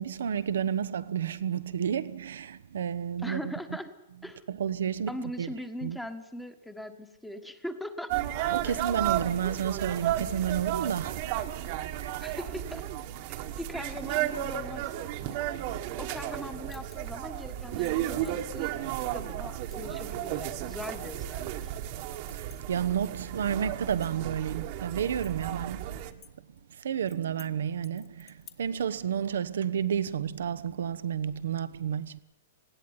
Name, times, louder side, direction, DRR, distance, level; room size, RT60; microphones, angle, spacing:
voice 1, 0.0-3.5 4.5-5.5 5.8-6.0 8.5-11.6 12.0-12.2 22.3-26.1 26.7-32.2, right 8 dB, 80° right, 1.1 m, -31 dB
voice 2, 3.2-3.9 4.2-4.4 5.1-8.1 8.6-8.8 12.2-12.8 13.3-15.5 16.0-18.7 19.1-21.7, left 1 dB, 5° left, 1.5 m, -40 dB
sound 1, 8.1-26.1, right 13 dB, 45° right, 1.5 m, -33 dB
sound 2, 16.7-17.2 17.6-18.4 19.0-19.1 19.7-19.9 20.2-21.7 22.1-23.1 23.4-23.5 23.9-24.8 25.2-26.3 26.6-26.7 27.1-27.5 27.8-28.8, left 9 dB, 25° left, 1.6 m, -55 dB
19.0 x 16.0 x 9.8 m
hypercardioid pair, 155°, 0 cm